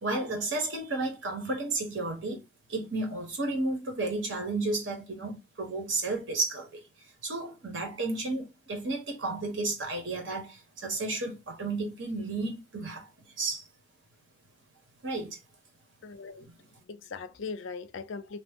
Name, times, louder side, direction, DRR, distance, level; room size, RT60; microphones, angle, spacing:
voice 1, 0.0-2.4 2.7-6.7 7.2-13.1 13.4-13.7 15.0-15.4, right 2 dB, 70° right, 1.0 m, -32 dB
voice 2, 16.0-16.5 16.9-18.4, left 4 dB, 70° left, 0.4 m, -39 dB
2.9 x 2.0 x 3.4 m
head